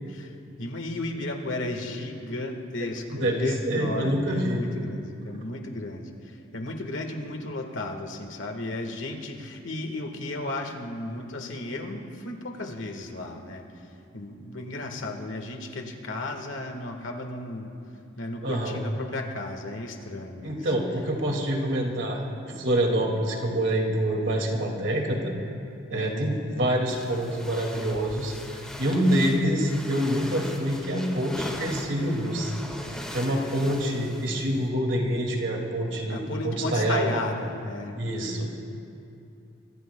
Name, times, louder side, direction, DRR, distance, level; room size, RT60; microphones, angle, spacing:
voice 1, 0.6-13.9 14.1-17.7 18.2-20.7 25.9-26.3 33.3-33.5 36.1-38.0, left 2 dB, 75° left, 3 dB, 1.6 m, -34 dB
voice 2, 3.1-4.6 18.4-18.8 20.4-25.3 25.9-32.5 33.1-37.1 38.0-38.6, right 1 dB, 70° right, 0 dB, 2.2 m, -26 dB
sound 1, 26.9-34.7, equal, 5° left, 1.6 m, -40 dB
25.0 x 25.0 x 2.2 m, 2.6 s
head